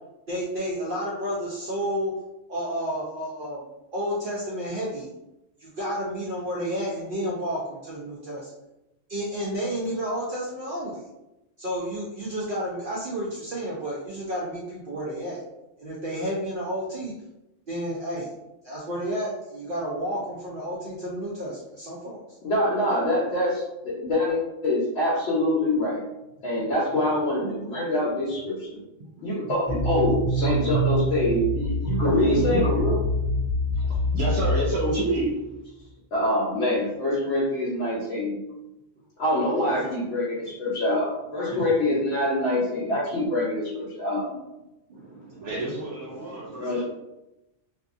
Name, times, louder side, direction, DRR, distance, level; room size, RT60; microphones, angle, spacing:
voice 1, 0.3-2.1 2.5-3.6 3.9-5.1 5.6-8.5 9.1-11.1 11.6-15.4 15.8-17.1 17.7-18.3 18.6-22.2 29.2-29.3 31.8-33.0 39.3-40.0 41.5-41.6 44.9-45.5 46.2-46.8, right 1 dB, 60° right, -5 dB, 0.5 m, -31 dB
voice 2, 22.4-26.0 26.4-28.8 29.2-32.6 36.1-38.4 39.2-44.3 46.6-46.8, left 1 dB, 65° left, -6 dB, 0.9 m, -25 dB
sound 1, 29.7-35.2, equal, 35° right, 0.9 m, -26 dB
voice 3, 33.7-35.4 45.4-46.8, right 2 dB, 80° right, -4 dB, 1.0 m, -28 dB
2.6 x 2.4 x 2.4 m, 0.95 s
omnidirectional pair, 1.3 m